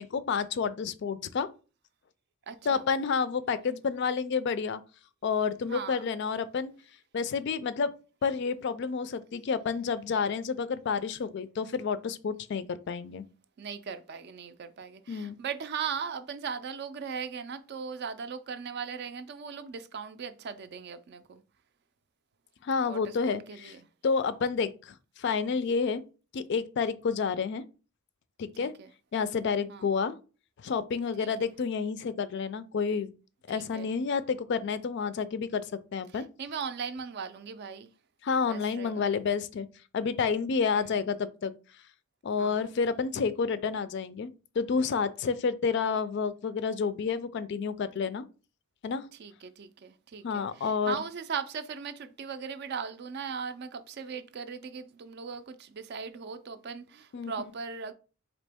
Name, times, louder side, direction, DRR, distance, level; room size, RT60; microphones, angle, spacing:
voice 1, 0.0-1.5 2.7-4.8 5.2-6.7 7.1-7.9 8.2-13.2 15.1-15.4 22.6-23.7 24.0-26.0 26.3-27.6 28.4-28.7 29.1-30.2 30.6-33.1 33.5-35.7 35.9-36.3 38.2-39.7 39.9-41.5 42.2-48.3 48.8-49.1 50.2-50.9 57.1-57.3, left 5 dB, 55° left, 0.3 m, -29 dB
voice 2, 2.5-2.8 5.7-6.0 13.6-21.4 22.8-23.8 28.6-28.9 29.7-29.9 31.2-31.5 33.5-33.9 36.1-37.9 38.4-39.1 40.8-41.0 42.4-42.7 49.2-57.9, right 6 dB, 50° right, 0.4 m, -39 dB
4.1 x 2.9 x 3.4 m
head